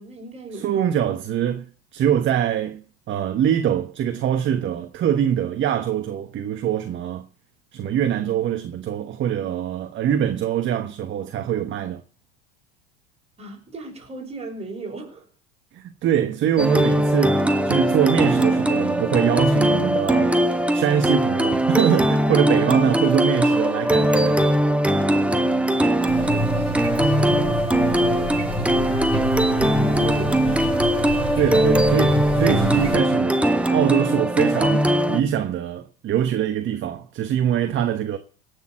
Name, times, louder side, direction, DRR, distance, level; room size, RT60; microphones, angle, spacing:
voice 1, 0.0-0.8 13.4-15.3 25.6-30.4, right 3 dB, 20° right, 5.7 m, -37 dB
voice 2, 0.5-2.8 3.1-7.2 7.7-12.0 15.7-20.3 20.7-24.4 31.0-33.4 33.7-38.2, right 9 dB, 40° right, 1.2 m, -23 dB
sound 1, 16.6-35.2, right 1 dB, 5° right, 1.3 m, -20 dB
sound 2, 26.1-32.9, right 1 dB, 15° left, 7.2 m, -28 dB
17.5 x 6.7 x 7.5 m
supercardioid pair, 100°, 30 cm